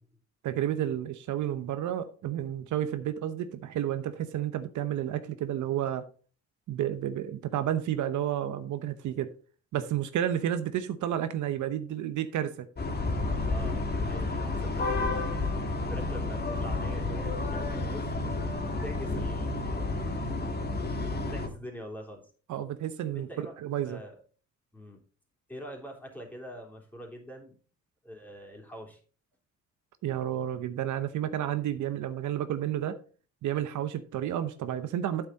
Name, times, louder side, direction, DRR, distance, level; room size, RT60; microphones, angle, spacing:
voice 1, 0.4-6.0 6.7-9.3 9.7-12.7 22.5-24.0 30.0-33.0 33.4-35.3, right 11 dB, 75° right, 0.9 m, -31 dB
sound 1, 12.8-21.5, left 2 dB, 35° left, 1.7 m, -31 dB
voice 2, 13.4-18.5 18.8-20.1 21.3-22.2 23.1-24.1 24.7-25.0 25.5-27.6 28.0-29.0, equal, 5° left, 3.3 m, -44 dB
8.7 x 7.0 x 4.0 m
cardioid pair, 90°, 30 cm